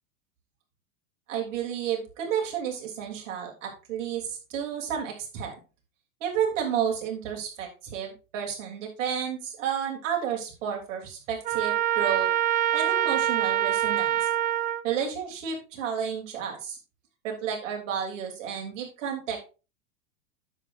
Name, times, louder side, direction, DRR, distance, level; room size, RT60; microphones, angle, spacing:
voice 1, 1.3-5.5 6.2-12.3 12.7-14.3 14.8-16.8 17.2-19.4, right 8 dB, 60° right, 1 dB, 3.2 m, -31 dB
Trumpet, 11.4-14.8, right 11 dB, 20° right, 0.4 m, -25 dB
9.7 x 7.9 x 2.6 m, 0.32 s
hypercardioid pair, 105°, 40 cm